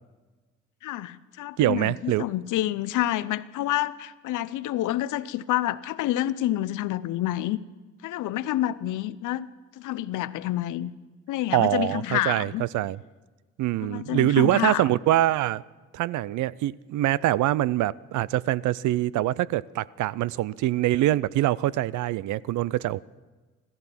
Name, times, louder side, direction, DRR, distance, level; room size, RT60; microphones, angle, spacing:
voice 1, 0.8-7.6 8.0-9.5 9.8-10.9 11.3-12.6 13.8-14.8, left 14 dB, 85° left, 0.6 m, -28 dB
voice 2, 1.6-2.3 11.5-13.0 13.6-15.6 15.9-23.0, right 14 dB, 75° right, 0.5 m, -24 dB
14.5 x 14.5 x 5.9 m
cardioid pair, 90°, 30 cm